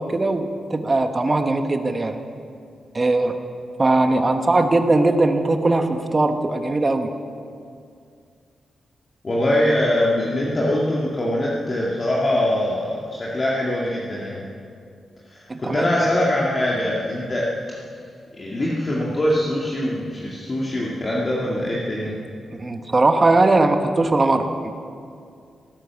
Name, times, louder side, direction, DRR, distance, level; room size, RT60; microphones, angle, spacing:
voice 1, 0.0-2.2 2.9-3.4 3.8-7.1 15.5-15.8 22.5-24.7, right 2 dB, 30° right, 7 dB, 1.1 m, -20 dB
voice 2, 9.2-14.4 15.3-17.5 18.3-22.1, left 1 dB, 40° left, -5 dB, 2.2 m, -23 dB
18.0 x 9.9 x 7.0 m, 2.3 s
cardioid pair, 75°, 0 cm